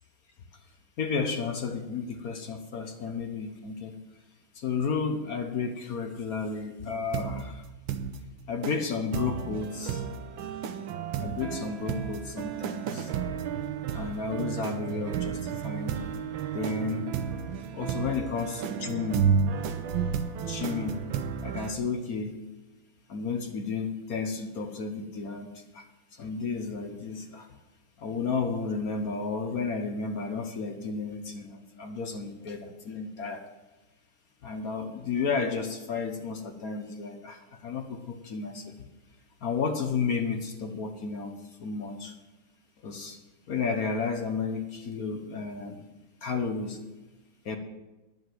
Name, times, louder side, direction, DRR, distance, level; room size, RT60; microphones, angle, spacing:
voice 1, 1.0-3.9 4.6-7.6 8.5-10.1 11.2-13.1 13.9-16.0 16.5-17.1 17.7-19.3 20.4-21.0 21.4-22.4 23.1-25.5 25.7-25.8 26.1-27.4 28.0-33.4 34.4-38.7 39.4-41.3 41.6-42.1 42.8-43.2 43.5-45.8 46.2-46.8 47.4-47.6, left 5 dB, 55° left, 5 dB, 1.1 m, -32 dB
sound 1, 7.1-7.4 7.9-8.2 8.6-8.8 9.1-21.7, right 7 dB, 70° right, 1.5 m, -32 dB
10.5 x 7.3 x 7.8 m, 1.1 s
omnidirectional pair, 2.4 m